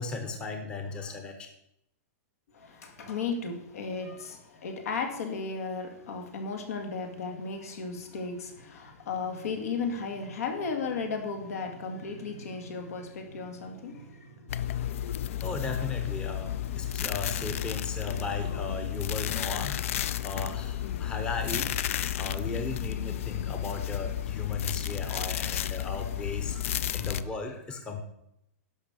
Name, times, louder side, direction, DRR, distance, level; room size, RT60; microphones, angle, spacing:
voice 1, 0.0-1.5 15.4-21.8 22.2-28.0, left 3 dB, 10° left, 5 dB, 0.8 m, -36 dB
voice 2, 2.5-15.0 25.1-25.2, left 4 dB, 80° left, 5 dB, 2.3 m, -35 dB
sound 1, 14.5-27.2, left 11 dB, 60° left, 0.5 m, -32 dB
11.5 x 5.4 x 6.9 m, 0.80 s
supercardioid pair, 170°, 8 cm